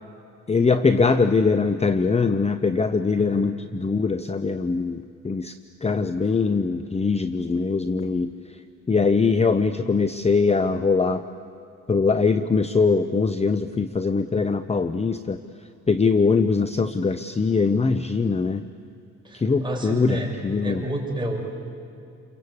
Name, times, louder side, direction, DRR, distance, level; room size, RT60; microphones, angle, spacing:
voice 1, 0.5-8.3 8.9-11.2 11.9-15.4 15.9-18.6 19.3-20.8, left 4 dB, 20° left, 11 dB, 0.8 m, -22 dB
voice 2, 19.2-20.4 20.6-21.4, right 1 dB, 15° right, -1 dB, 6.5 m, -30 dB
29.0 x 23.0 x 8.4 m, 2.6 s
cardioid pair, 90°, 30 cm